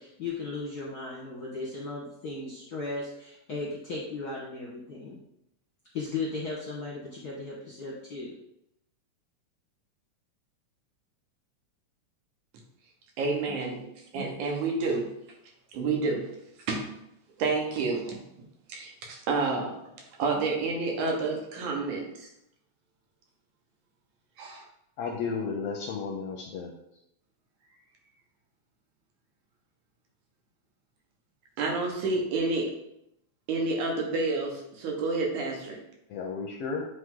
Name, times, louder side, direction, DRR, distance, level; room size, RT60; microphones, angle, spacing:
voice 1, 0.0-5.1 5.9-8.3, left 3 dB, 55° left, -5 dB, 1.1 m, -36 dB
voice 2, 13.2-15.1 15.7-16.3 16.7-16.9 17.4-18.2 18.7-19.9 20.2-22.3 24.4-24.7 31.6-32.7 33.5-35.8, right 3 dB, 90° right, 0 dB, 2.7 m, -29 dB
voice 3, 25.0-26.8 36.1-36.9, left 5 dB, 75° left, 1 dB, 1.4 m, -33 dB
9.1 x 3.3 x 3.7 m, 0.80 s
omnidirectional pair, 3.3 m